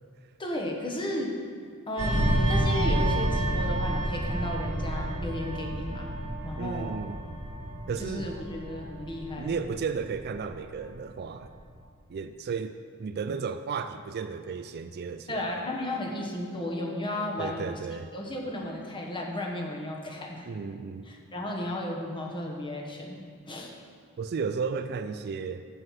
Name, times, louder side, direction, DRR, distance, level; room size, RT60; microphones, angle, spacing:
voice 1, 0.4-1.3 1.9-6.1 6.4-6.9 8.0-9.6 15.3-17.8 18.1-20.5 21.1-23.2 23.5-23.7, left 1 dB, 25° left, 0 dB, 1.2 m, -34 dB
sound 1, 2.0-11.0 11.4-11.6, right 1 dB, 75° right, 1.9 m, -29 dB
voice 2, 6.6-7.2 7.9-8.3 9.4-11.5 12.1-15.6 17.4-18.1 20.5-21.1 24.2-25.7, right 5 dB, 50° right, 10 dB, 0.3 m, -34 dB
7.9 x 7.8 x 5.7 m, 2.1 s
head